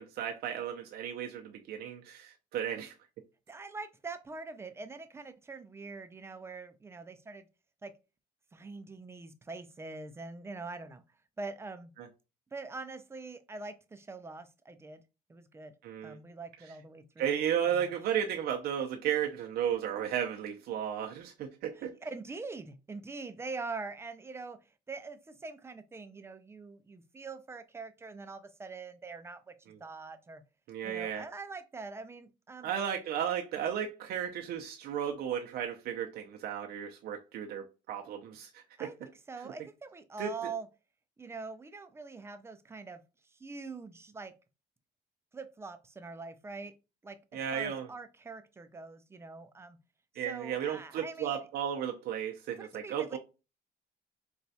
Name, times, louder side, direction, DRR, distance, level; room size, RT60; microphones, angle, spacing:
voice 1, 0.0-2.9 12.0-12.1 15.8-16.2 17.2-21.9 29.7-29.8 30.7-31.2 32.6-38.9 40.2-40.5 47.3-47.9 50.2-53.2, right 9 dB, 65° right, 0.5 m, -34 dB
voice 2, 3.5-7.5 7.8-7.9 8.5-11.0 11.4-11.9 12.5-15.0 15.3-15.7 16.0-17.4 17.7-17.9 21.7-24.6 24.9-29.5 29.8-30.4 30.8-32.7 38.8-39.0 39.3-40.7 41.2-44.3 45.3-46.7 47.0-49.8 50.2-51.5 52.6-53.2, right 3 dB, 15° right, 0.4 m, -44 dB
4.2 x 2.3 x 2.6 m
cardioid pair, 110°, 17 cm